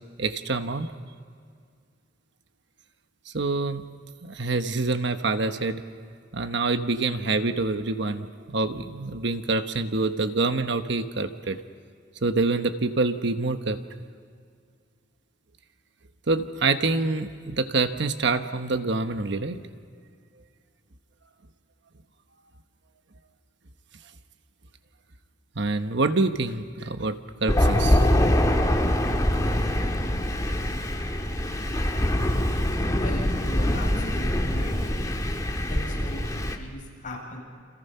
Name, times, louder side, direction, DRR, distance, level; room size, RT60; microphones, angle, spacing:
voice 1, 0.2-0.9 3.3-3.8 4.2-5.8 6.3-11.6 12.2-13.8 16.3-19.6 25.6-28.1, right 3 dB, 65° right, 8 dB, 1.1 m, -26 dB
Thunder, 27.5-36.6, left 1 dB, 20° left, 1.8 m, -24 dB
voice 2, 33.0-34.8 35.7-37.4, left 1 dB, 45° left, -2 dB, 7.7 m, -38 dB
29.0 x 28.0 x 5.7 m, 2.2 s
head